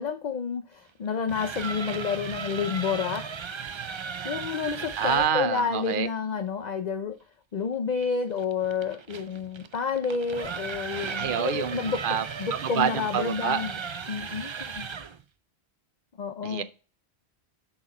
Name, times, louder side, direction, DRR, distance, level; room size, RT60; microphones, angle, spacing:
voice 1, 0.0-3.2 4.2-7.2 7.5-12.0 12.4-13.8 14.1-14.9 16.2-16.6, left 6 dB, 50° left, 0.7 m, -30 dB
sound 1, 1.1-5.4 8.0-15.2, right 6 dB, 40° right, 0.4 m, -36 dB
voice 2, 4.9-6.1 11.2-13.6 16.4-16.6, right 8 dB, 55° right, 0.8 m, -27 dB
6.4 x 6.0 x 4.2 m
omnidirectional pair, 1.1 m